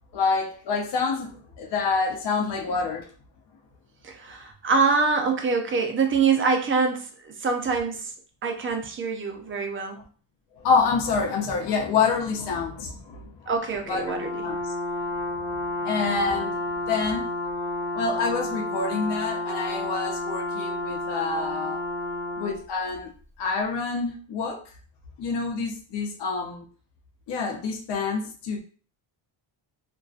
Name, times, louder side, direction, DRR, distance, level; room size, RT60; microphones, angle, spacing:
voice 1, 0.1-3.1 10.6-13.3 13.9-14.0 14.4-14.7 15.8-16.5 16.9-17.2 17.9-21.8 22.4-23.1 23.4-24.6 25.2-26.7 27.3-28.6, left 4 dB, 60° left, 0.6 m, -27 dB
voice 2, 4.0-8.1 8.4-10.0 13.5-14.4, right 4 dB, 30° right, 0.4 m, -25 dB
Brass instrument, 13.9-22.6, left 2 dB, 15° left, 0.9 m, -30 dB
2.6 x 2.2 x 2.3 m
cardioid pair, 130°, 47 cm